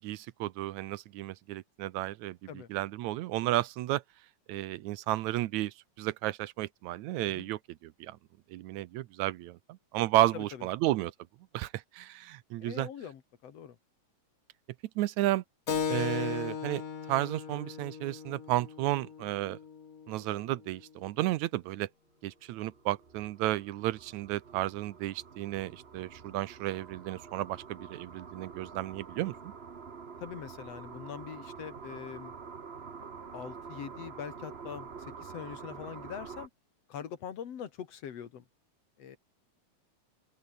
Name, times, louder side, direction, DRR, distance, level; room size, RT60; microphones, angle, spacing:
voice 1, 0.0-4.0 4.5-8.2 8.5-9.6 9.9-11.1 11.5-12.9 15.0-15.4 15.9-16.8 17.1-19.6 20.1-21.9 22.2-29.5, right 16 dB, 80° right, 2.1 m, -32 dB
voice 2, 10.3-10.7 12.6-13.8 30.2-32.3 33.3-36.5 36.9-38.4 39.0-39.2, left 8 dB, 60° left, 2.7 m, -43 dB
Keyboard (musical), 15.7-20.8, left 6 dB, 40° left, 1.3 m, -37 dB
sound 1, 22.4-36.5, right 5 dB, 55° right, 0.6 m, -47 dB
open air
omnidirectional pair, 3.3 m